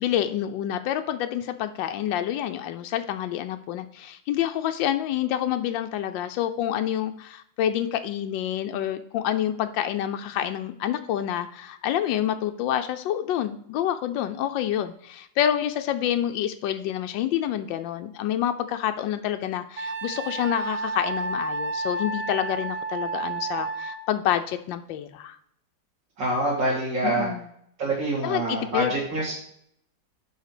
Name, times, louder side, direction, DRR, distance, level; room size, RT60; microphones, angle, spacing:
voice 1, 0.0-25.4 27.0-27.5 28.2-28.9, left 11 dB, 90° left, 9 dB, 1.3 m, -28 dB
Wind instrument woodwind instrument, 19.8-24.0, right 3 dB, 55° right, 1.2 m, -31 dB
voice 2, 26.2-27.3 27.8-29.3, right 1 dB, 75° right, -6 dB, 2.7 m, -26 dB
5.5 x 5.1 x 5.9 m, 0.69 s
omnidirectional pair, 2.0 m